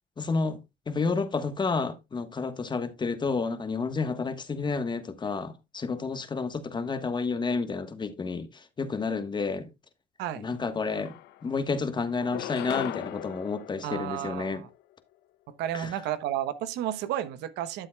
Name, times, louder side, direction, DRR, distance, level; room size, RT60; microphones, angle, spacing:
voice 1, 0.2-0.6 0.9-8.5 8.8-9.7 10.4-11.1 11.4-14.6 15.7-15.9, left 4 dB, 25° left, 1.3 m, -30 dB
sound 1, 10.5-10.6 10.9-11.7 12.2-14.8, left 13 dB, 80° left, 0.8 m, -39 dB
voice 2, 13.8-14.7 15.6-17.9, right 11 dB, 85° right, 1.0 m, -32 dB
12.5 x 7.5 x 2.3 m
cardioid pair, 110°, 17 cm